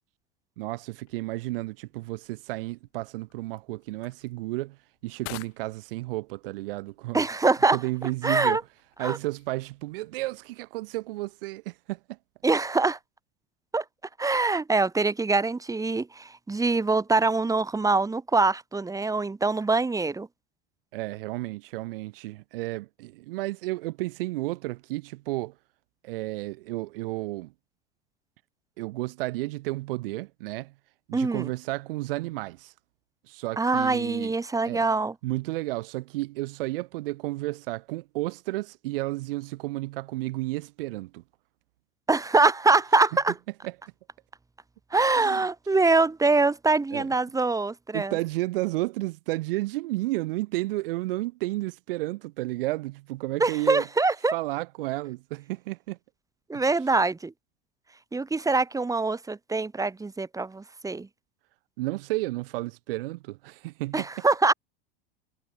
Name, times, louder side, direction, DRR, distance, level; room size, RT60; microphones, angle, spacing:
voice 1, 0.6-4.8 5.0-7.2 7.7-8.6 9.0-12.2 20.9-25.5 26.0-27.5 28.8-30.7 31.1-32.7 33.3-34.3 34.7-34.8 35.2-41.2 43.6-43.7 45.2-45.4 46.9-47.1 47.9-53.9 54.3-56.0 56.5-56.6 61.8-64.2, right 19 dB, 65° right, 6.8 m, -32 dB
sound 1, 0.9-10.1, left 21 dB, 50° left, 6.4 m, -51 dB
voice 2, 7.1-7.8 8.2-8.6 9.0-9.2 12.4-13.0 13.7-13.8 14.2-20.3 31.1-31.5 33.6-35.1 42.1-43.3 44.9-48.1 53.4-54.3 56.5-57.3 58.1-61.1 63.9-64.5, right 3 dB, 10° right, 1.4 m, -24 dB
hypercardioid pair, 90°, 30 cm